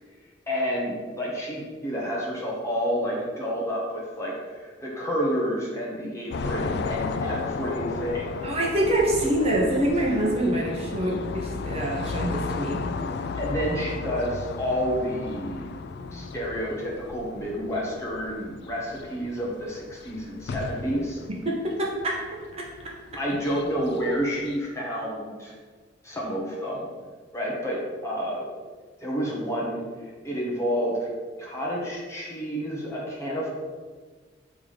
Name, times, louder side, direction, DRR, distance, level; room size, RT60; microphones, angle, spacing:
voice 1, 0.5-8.4 13.4-15.7 16.1-21.2 23.2-25.5 26.0-26.8 27.3-28.4 29.0-29.8 30.2-31.1 31.4-33.5, equal, 15° left, -4 dB, 1.5 m, -29 dB
sound 1, 6.3-24.6, left 4 dB, 55° left, 0.3 m, -35 dB
voice 2, 8.4-12.8 16.0-16.3 21.4-22.9 24.0-24.1, right 1 dB, 30° right, -3 dB, 1.0 m, -26 dB
7.8 x 3.7 x 5.0 m, 1.5 s
head